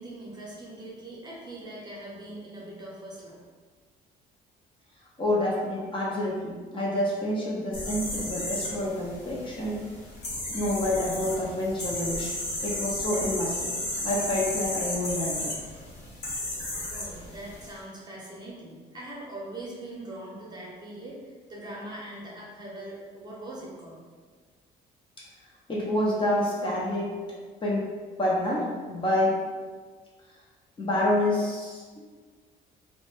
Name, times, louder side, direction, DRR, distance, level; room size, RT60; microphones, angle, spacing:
voice 1, 0.0-3.4 16.9-24.0, right 1 dB, 25° right, -5 dB, 0.7 m, -41 dB
voice 2, 5.2-9.9 10.5-12.4 12.6-13.7 14.0-15.5 25.2-25.3 25.7-27.2 27.6-27.9 28.2-29.4 30.8-31.8, left 1 dB, 30° left, -5 dB, 0.5 m, -28 dB
sound 1, 7.7-17.7, left 1 dB, 85° left, 0.8 m, -34 dB
2.1 x 2.0 x 3.1 m, 1.5 s
cardioid pair, 110°, 17 cm